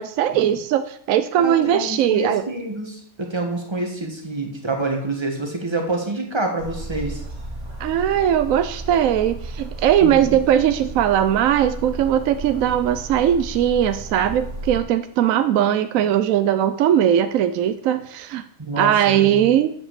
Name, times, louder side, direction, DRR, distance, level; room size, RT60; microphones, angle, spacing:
voice 1, 0.0-2.4 7.8-18.4 18.8-19.7, right 10 dB, 75° right, 10 dB, 0.9 m, -19 dB
voice 2, 1.4-7.2 10.0-10.4 18.6-19.5, right 2 dB, 20° right, 3 dB, 1.5 m, -27 dB
sound 1, 6.6-14.8, right 2 dB, 90° right, 2.4 m, -34 dB
7.8 x 5.9 x 7.4 m, 0.65 s
omnidirectional pair, 1.5 m